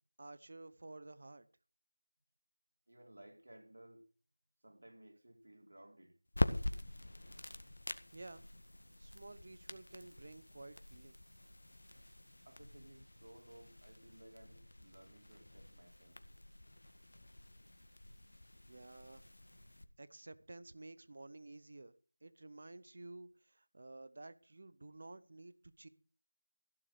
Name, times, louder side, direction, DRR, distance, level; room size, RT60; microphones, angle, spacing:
voice 1, 0.2-1.5 8.1-8.4 9.0-11.1 18.7-19.2 20.0-21.9 22.2-25.9, right 2 dB, 30° right, 0.9 m, -53 dB
voice 2, 2.9-4.1 4.6-6.1 12.4-16.2, right 1 dB, 55° right, 4.6 m, -58 dB
sound 1, 6.3-19.8, left 1 dB, 60° left, 1.7 m, -44 dB
16.0 x 7.5 x 6.4 m
figure-of-eight pair, 180°, 0 cm